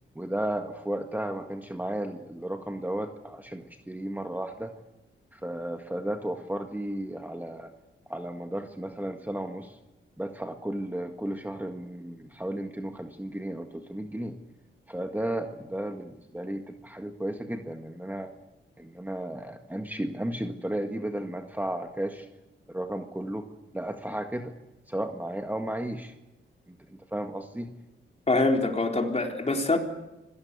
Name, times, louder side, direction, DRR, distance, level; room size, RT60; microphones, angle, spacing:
voice 1, 0.2-4.7 5.3-7.7 8.1-9.7 10.2-14.3 14.9-18.3 18.8-22.3 22.7-23.5 23.7-24.5 24.9-26.1 27.1-27.7, right 1 dB, 10° right, 4 dB, 1.8 m, -34 dB
voice 2, 28.3-29.8, left 2 dB, 30° left, 2 dB, 3.9 m, -24 dB
26.0 x 18.0 x 8.3 m, 0.99 s
cardioid pair, 70°, 21 cm